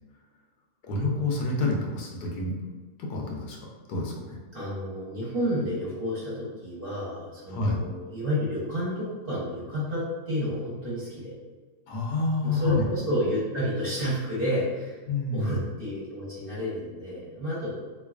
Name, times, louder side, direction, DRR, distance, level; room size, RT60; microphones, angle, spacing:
voice 1, 0.8-2.5 3.0-3.6 3.9-4.4 7.5-7.8 11.9-12.9 15.1-15.7, left 2 dB, 80° left, -1 dB, 1.2 m, -28 dB
voice 2, 4.5-11.3 12.4-15.0 15.3-17.7, equal, 40° right, -8 dB, 1.1 m, -30 dB
3.8 x 3.1 x 2.4 m, 1.4 s
omnidirectional pair, 1.8 m